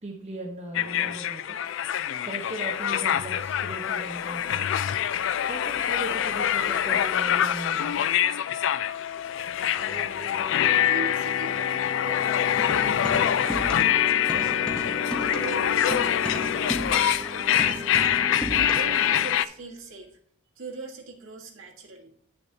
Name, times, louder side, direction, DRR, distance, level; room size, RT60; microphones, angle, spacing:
voice 1, 0.0-1.6 2.3-4.7 5.4-8.2, right 2 dB, 30° right, 0 dB, 1.0 m, -38 dB
sound 1, 0.7-19.5, left 10 dB, 60° left, 0.3 m, -25 dB
Singing, 9.5-19.3, equal, 15° right, 0.7 m, -41 dB
voice 2, 10.8-12.2 12.4-14.8 15.1-18.0 18.6-20.1 20.6-22.1, right 3 dB, 70° right, -1 dB, 1.8 m, -40 dB
sound 2, 12.7-14.0 14.3-19.0, equal, 5° left, 1.0 m, -34 dB
9.6 x 6.8 x 2.8 m, 0.63 s
head